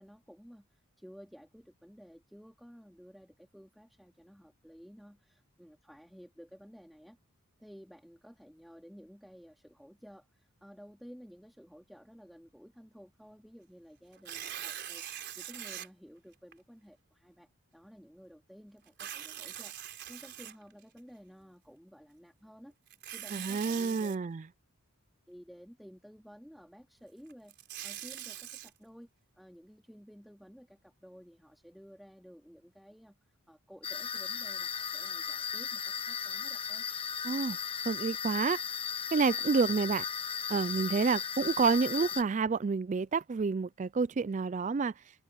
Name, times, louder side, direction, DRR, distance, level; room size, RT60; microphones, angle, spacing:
voice 1, 0.0-7.2 7.6-22.7 23.1-24.1 25.3-29.1 29.3-36.8, equal, ahead, 3.4 m, -54 dB
Tearing, 14.1-15.9 16.5-16.6 18.9-21.0 22.9-24.2 27.3-28.7, right 11 dB, 50° right, 4.4 m, -42 dB
voice 2, 23.3-24.4 37.2-37.6 37.9-38.6 39.1-40.0 40.5-44.9, right 4 dB, 35° right, 0.3 m, -29 dB
sound 1, 33.8-42.2, left 7 dB, 25° left, 0.8 m, -36 dB
open air
head